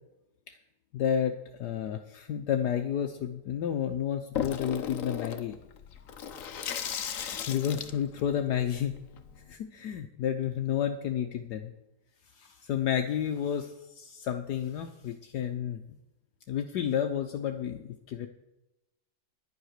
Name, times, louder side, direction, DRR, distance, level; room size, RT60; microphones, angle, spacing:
voice 1, 0.9-5.6 7.5-9.0 9.5-11.7 12.4-15.8 16.5-18.3, left 9 dB, 70° left, 6 dB, 1.3 m, -31 dB
Water tap faucet / Sink (filling or washing), 4.3-9.5, left 8 dB, 55° left, 1.2 m, -37 dB
11.0 x 10.0 x 6.5 m, 0.95 s
omnidirectional pair, 1.9 m